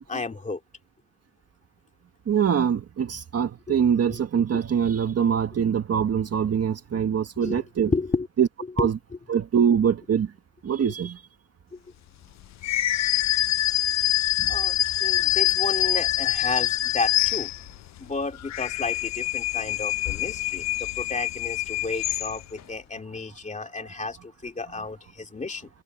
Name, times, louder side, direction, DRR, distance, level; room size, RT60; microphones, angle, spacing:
voice 1, 0.1-0.6 3.7-3.8 7.4-8.3 14.5-17.5 18.0-24.2 24.4-25.7, left 3 dB, 20° left, 2.5 m, -32 dB
voice 2, 2.3-7.9 8.4-8.5 8.8-8.9 9.3-10.3 10.6-11.2 14.4-14.5, right 8 dB, 35° right, 1.6 m, -23 dB
sound 1, 12.6-17.9 18.4-22.6, left 15 dB, 45° left, 0.4 m, -25 dB
cardioid pair, 140°, 40 cm